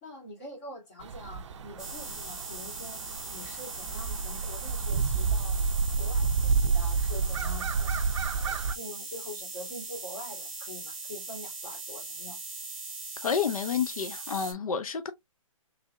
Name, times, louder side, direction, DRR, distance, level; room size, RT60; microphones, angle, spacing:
voice 1, 0.0-5.6 6.0-7.9 8.3-12.4, left 1 dB, 25° left, 2.2 m, -45 dB
sound 1, 1.0-8.7, right 4 dB, 60° right, 0.5 m, -30 dB
sound 2, 1.8-14.5, right 3 dB, ahead, 0.9 m, -40 dB
voice 2, 13.2-15.1, left 7 dB, 85° left, 0.6 m, -29 dB
3.7 x 3.4 x 2.2 m
hypercardioid pair, 165°, 18 cm